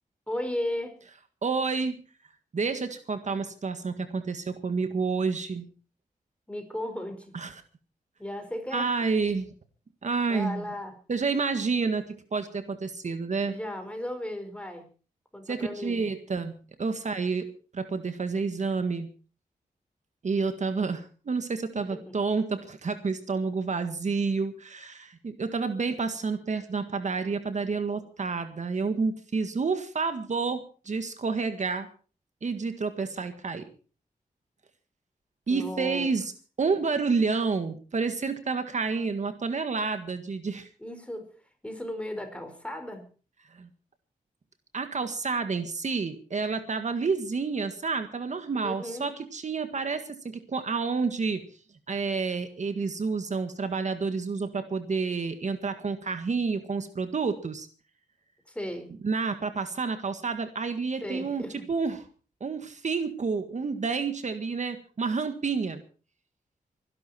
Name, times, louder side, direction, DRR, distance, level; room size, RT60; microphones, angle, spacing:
voice 1, 0.3-1.0 6.5-7.4 8.2-8.9 10.3-11.0 13.5-14.9 15.3-16.0 21.8-22.2 35.5-36.2 36.7-36.8 40.8-41.3 41.6-43.1 48.6-49.1 58.5-58.9 61.0-61.7, left 1 dB, 10° left, 6 dB, 4.8 m, -35 dB
voice 2, 1.4-2.0 2.5-5.7 7.3-7.6 8.7-9.5 10.0-10.6 11.1-13.5 15.5-16.5 16.8-17.5 17.7-19.1 20.2-31.9 32.4-33.6 35.5-36.3 36.6-40.7 43.5-43.7 44.7-51.4 51.9-57.7 59.0-62.0 62.4-65.8, right 4 dB, 55° right, 9 dB, 1.7 m, -29 dB
24.5 x 11.5 x 4.3 m, 0.37 s
wide cardioid pair, 85°, 15 cm